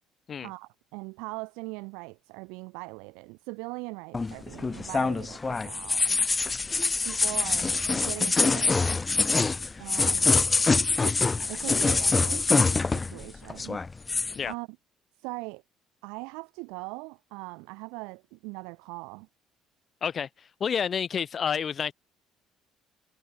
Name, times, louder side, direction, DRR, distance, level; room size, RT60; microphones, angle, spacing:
voice 1, 0.4-6.2 7.0-7.8 8.0-8.8 9.8-10.4 11.0-11.2 11.5-13.8 14.5-14.7 15.2-15.6 16.0-19.3, right 30 dB, 85° right, 7.0 m, -40 dB
sound 1, 4.1-13.2 13.5-14.4, left 4 dB, 25° left, 1.3 m, -25 dB
voice 2, 20.0-21.9, left 7 dB, 45° left, 4.4 m, -29 dB
supercardioid pair, 75°, 0 cm